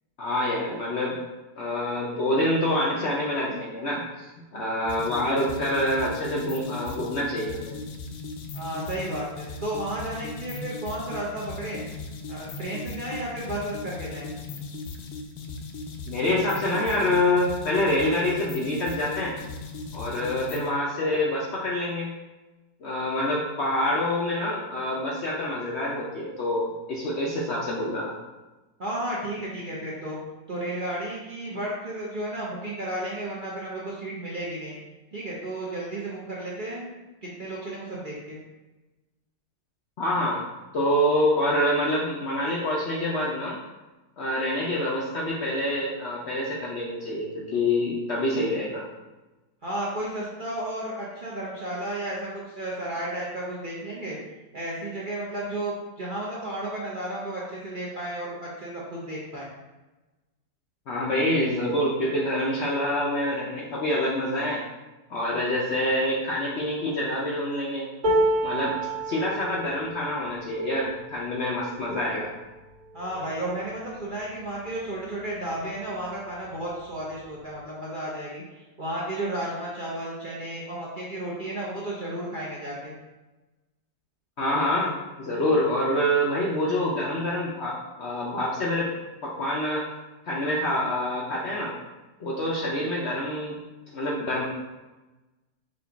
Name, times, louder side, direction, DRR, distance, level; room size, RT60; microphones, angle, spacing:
voice 1, 0.2-1.1 1.6-7.7 16.1-19.3 19.9-22.1 22.8-28.1 40.0-40.4 40.7-43.6 44.2-48.8 60.9-64.6 65.1-67.8 68.4-68.8 69.1-72.3 84.4-88.9 89.2-89.9 90.3-91.7 92.2-93.6 93.9-94.4, left 1 dB, 60° left, -4 dB, 0.7 m, -26 dB
sound 1, 4.9-20.7, left 3 dB, 80° left, 1.1 m, -38 dB
voice 2, 8.5-11.8 12.3-14.3 28.8-30.2 30.5-34.8 35.1-36.9 37.2-38.4 49.6-54.2 54.5-59.5 72.9-78.4 78.8-82.9 92.6-92.7, right 1 dB, 45° right, -6 dB, 0.7 m, -33 dB
sound 2, 68.0-74.2 74.8-75.0 75.3-76.0 77.0-77.1, right 1 dB, 70° right, 1.9 m, -30 dB
5.0 x 2.4 x 3.9 m, 1.1 s
omnidirectional pair, 1.7 m